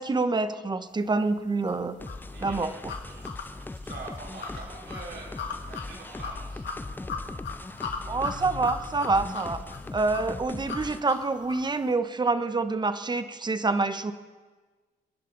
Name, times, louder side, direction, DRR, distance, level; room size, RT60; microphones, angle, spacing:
voice 1, 0.0-1.9 2.4-2.9 8.1-9.6 9.9-14.1, right 3 dB, 20° right, 11 dB, 1.0 m, -27 dB
sound 1, 1.7-11.7, left 5 dB, 65° left, 2.4 m, -39 dB
sound 2, 2.0-11.0, left 2 dB, 10° left, 0.5 m, -39 dB
voice 2, 2.3-2.8 3.1-6.6, right 3 dB, 65° right, -3 dB, 5.0 m, -44 dB
29.0 x 11.0 x 4.0 m, 1.4 s
cardioid pair, 90°, 20 cm